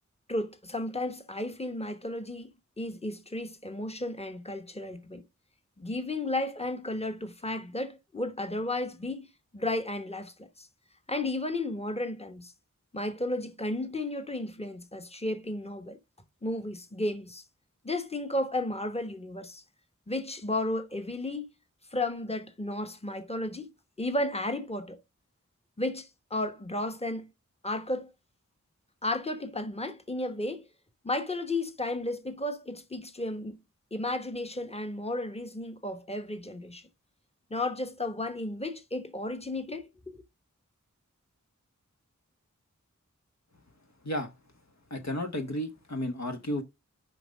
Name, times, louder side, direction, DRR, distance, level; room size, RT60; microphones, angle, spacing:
voice 1, 0.3-5.2 5.8-10.7 11.1-12.5 12.9-16.0 16.4-17.4 17.8-19.6 20.1-21.5 21.9-23.7 24.0-25.0 25.8-27.3 27.6-28.1 29.0-30.7 31.0-33.6 33.9-36.8 37.5-40.2, left 1 dB, 20° left, 1.2 m, -33 dB
voice 2, 44.9-46.6, left 1 dB, 60° left, 1.0 m, -33 dB
5.8 x 5.3 x 5.0 m
wide cardioid pair, 55°, 31 cm